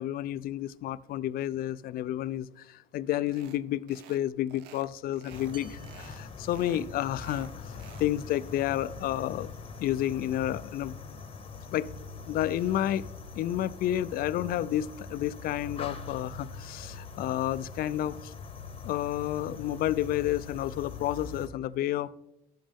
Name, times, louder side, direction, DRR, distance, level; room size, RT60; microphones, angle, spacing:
voice 1, 0.0-7.5 8.0-9.5 9.8-11.0 11.7-11.9 12.3-13.1 13.4-18.3 18.8-22.1, left 12 dB, 60° left, 17 dB, 0.4 m, -30 dB
sound 1, 3.3-3.6 3.9-4.2 4.5-5.6 5.8-6.2 6.5-8.1, right 11 dB, 90° right, 0.6 m, -52 dB
sound 2, 5.3-21.5, left 4 dB, 35° left, 1.0 m, -43 dB
sound 3, 5.5-7.3, right 5 dB, 30° right, 0.8 m, -55 dB
11.0 x 7.3 x 3.5 m, 0.82 s
cardioid pair, 110°, 17 cm